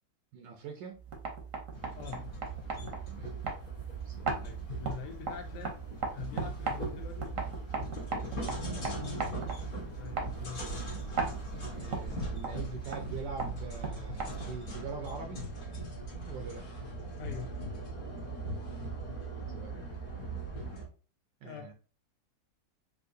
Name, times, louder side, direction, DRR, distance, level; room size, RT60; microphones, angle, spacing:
voice 1, 0.3-1.0 3.1-3.3 4.0-4.4 8.5-9.0 11.7-15.4 16.3-16.6 19.5-19.8 21.4-21.7, right 5 dB, 80° right, 4 dB, 1.3 m, -44 dB
sound 1, 1.0-14.7, right 4 dB, 55° right, 1.0 m, -39 dB
sound 2, 1.7-20.9, right 2 dB, 40° left, 0.8 m, -40 dB
voice 2, 4.4-5.8 6.1-7.3 10.0-10.6 17.2-17.5 21.4-21.7, left 7 dB, 75° left, 5 dB, 1.3 m, -44 dB
3.6 x 2.7 x 2.5 m, 0.36 s
omnidirectional pair, 2.0 m